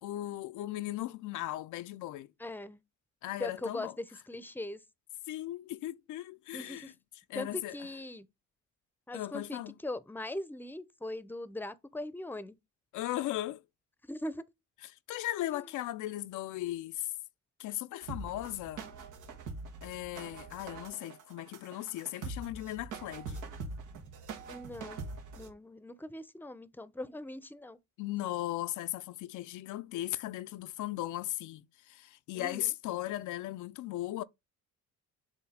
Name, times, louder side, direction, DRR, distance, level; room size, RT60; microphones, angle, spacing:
voice 1, 0.0-2.3 3.2-3.9 5.3-6.9 7.3-7.8 9.1-9.7 12.9-13.6 14.9-17.1 17.6-18.8 19.8-23.4 28.0-34.2, left 15 dB, 80° left, 0.5 m, -37 dB
voice 2, 2.4-2.8 3.4-4.8 6.5-6.9 7.3-8.3 9.1-12.6 14.1-14.4 15.5-15.7 24.5-25.0 25.4-27.8 32.3-32.7, left 1 dB, 5° left, 0.6 m, -40 dB
sound 1, 18.0-25.5, right 3 dB, 90° right, 1.3 m, -43 dB
7.1 x 2.7 x 5.0 m
cardioid pair, 90°, 30 cm